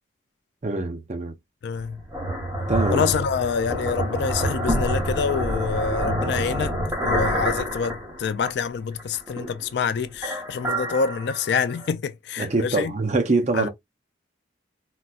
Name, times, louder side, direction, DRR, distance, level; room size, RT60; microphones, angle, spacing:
voice 1, 0.6-1.3 2.7-3.1 12.4-13.7, right 3 dB, 35° right, 0.5 m, -24 dB
voice 2, 1.6-2.0 2.9-6.8 7.0-12.9 13.5-13.7, left 6 dB, 60° left, 0.3 m, -26 dB
sound 1, 1.8-8.6 9.0-9.8 10.1-11.9, equal, 15° right, 0.9 m, -27 dB
4.0 x 2.2 x 2.3 m
head